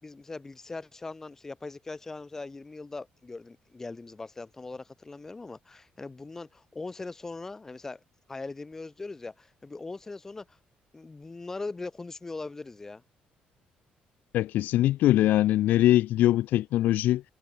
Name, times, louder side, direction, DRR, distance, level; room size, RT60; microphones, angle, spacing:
voice 1, 0.0-8.0 8.3-10.6 10.9-13.0, left 3 dB, 15° left, 6.2 m, -40 dB
voice 2, 14.3-17.2, left 14 dB, 85° left, 1.7 m, -22 dB
cardioid pair, 180°, 3 cm